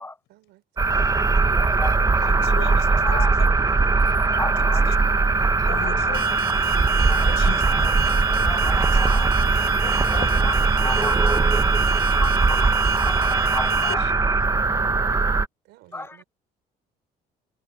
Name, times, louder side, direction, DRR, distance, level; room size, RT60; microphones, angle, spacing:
voice 1, 0.3-1.2 15.7-16.2, right 17 dB, 90° right, 5.3 m, -54 dB
sound 1, 0.8-15.5, right 3 dB, 20° right, 1.3 m, -20 dB
voice 2, 1.6-1.9 3.2-3.3 4.4-4.8 7.1-7.2 8.5-8.8 9.1-9.2 9.6-9.7 10.8-11.3 12.2-12.7 13.1-13.2 13.6-13.7 15.9-16.1, left 2 dB, 15° left, 0.4 m, -32 dB
voice 3, 2.2-3.5 4.3-5.0 5.7-6.3 7.2-7.6 8.7-9.0 9.8-10.4 12.2-12.3 13.9-14.1 15.9-16.0, left 16 dB, 80° left, 6.8 m, -37 dB
Alarm, 6.1-13.9, right 9 dB, 70° right, 1.3 m, -33 dB
cardioid pair, 110°, 17 cm